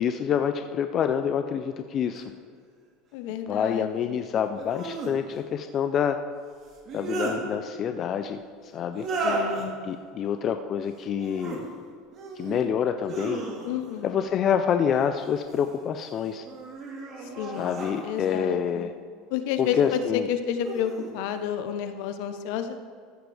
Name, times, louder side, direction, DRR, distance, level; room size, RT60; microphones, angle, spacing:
voice 1, 0.0-2.2 3.5-6.2 6.9-8.4 8.7-9.0 9.8-11.6 12.4-13.4 14.0-16.4 17.6-18.9 19.6-20.3, left 8 dB, 35° left, 7 dB, 0.4 m, -27 dB
sound 1, 2.1-2.2 4.5-5.1 6.7-7.4 8.9-9.7 11.1-11.6 12.1-12.6 13.0-13.9 15.2-15.8 16.4-18.4 19.5-20.0 20.6-21.1, right 2 dB, 35° right, 2.0 m, -34 dB
voice 2, 3.1-4.2 9.2-9.8 13.6-14.1 17.2-17.7 18.0-18.9 19.3-22.8, left 8 dB, 65° left, 9 dB, 0.8 m, -30 dB
14.0 x 7.9 x 3.4 m, 2.1 s
supercardioid pair, 150°, 0 cm